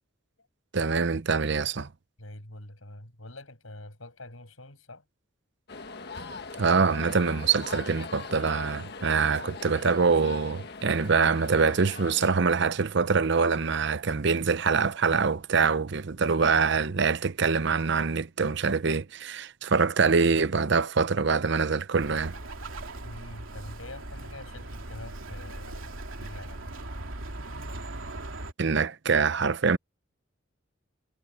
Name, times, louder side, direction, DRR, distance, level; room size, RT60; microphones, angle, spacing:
voice 1, 0.7-1.9 6.6-22.3 28.6-29.8, right 5 dB, 60° right, 0.7 m, -24 dB
voice 2, 2.2-5.0 23.0-26.8, left 1 dB, 85° left, 8.0 m, -45 dB
sound 1, 5.7-12.3, left 4 dB, 55° left, 1.5 m, -41 dB
Bird, 22.0-28.5, right 2 dB, 80° right, 2.9 m, -39 dB
head